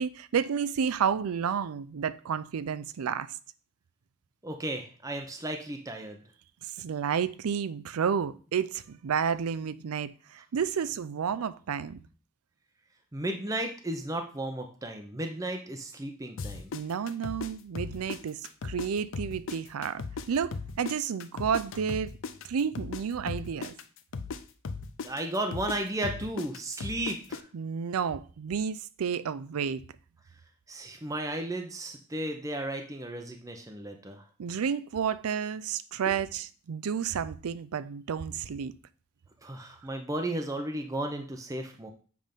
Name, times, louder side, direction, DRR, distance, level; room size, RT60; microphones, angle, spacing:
voice 1, 0.0-3.4 6.6-12.0 16.7-22.1 22.4-23.7 27.5-29.8 34.4-38.7, right 7 dB, 85° right, 0.4 m, -31 dB
voice 2, 4.4-6.2 13.1-16.7 25.0-27.5 30.7-34.2 36.1-36.2 39.4-41.9, right 1 dB, 15° right, 0.6 m, -34 dB
sound 1, 16.4-18.9 19.1-23.0 23.3-27.4, left 4 dB, 60° left, 0.5 m, -37 dB
7.6 x 3.5 x 5.2 m
head